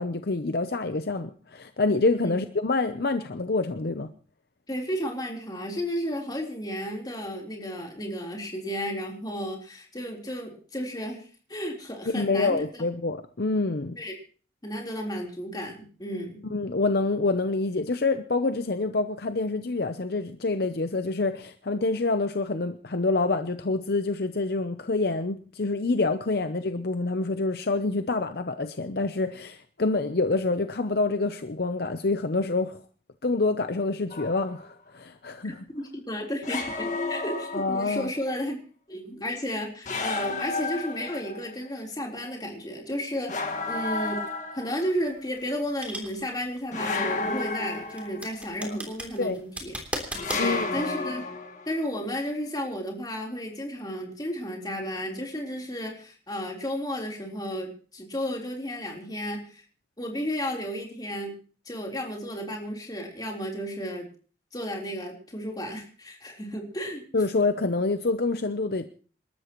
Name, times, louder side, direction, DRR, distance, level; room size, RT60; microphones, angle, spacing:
voice 1, 0.0-4.1 12.1-14.0 16.4-32.8 33.2-35.6 37.5-38.1 48.7-48.8 49.2-49.4 50.4-50.7 67.1-68.9, left 3 dB, 60° left, 9 dB, 0.7 m, -27 dB
voice 2, 4.7-11.2 11.5-12.6 14.0-14.2 14.6-16.4 35.4-38.6 38.9-44.3 44.5-49.7 50.3-51.2 51.7-59.6 60.0-61.3 61.7-64.1 64.5-67.0, equal, 20° left, 0 dB, 3.8 m, -33 dB
sound 1, 34.1-34.7 36.4-38.1 39.8-41.5 43.3-45.0 46.7-48.5 50.1-51.8, left 3 dB, 45° left, 1.8 m, -32 dB
sound 2, 44.8-50.5, right 1 dB, 10° right, 3.1 m, -37 dB
27.5 x 13.0 x 3.1 m, 0.41 s
head